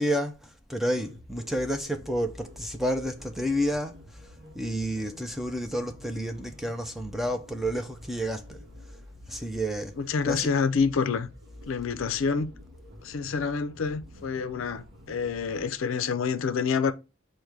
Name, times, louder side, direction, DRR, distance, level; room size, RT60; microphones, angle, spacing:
voice 1, 0.0-3.9 4.5-8.6 9.3-9.9 10.2-10.5, equal, ahead, 0.4 m, -30 dB
sound 1, 0.9-15.7, left 1 dB, 55° right, 0.9 m, -48 dB
voice 2, 10.0-11.3 11.7-12.5 13.0-16.9, left 5 dB, 75° left, 0.4 m, -27 dB
5.2 x 2.1 x 4.5 m
head